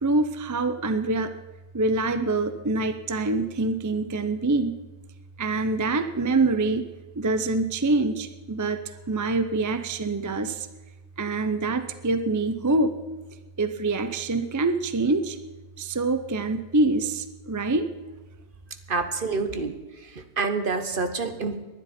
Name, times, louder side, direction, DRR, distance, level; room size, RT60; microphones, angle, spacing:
voice 1, 0.0-1.3 1.7-4.8 5.4-6.8 7.2-10.7 11.2-12.9 13.6-15.4 15.8-17.9, right 2 dB, 25° right, 9 dB, 0.4 m, -25 dB
voice 2, 18.9-21.6, right 4 dB, 45° right, 8 dB, 1.2 m, -28 dB
20.0 x 11.5 x 4.3 m, 1.2 s
omnidirectional pair, 1.4 m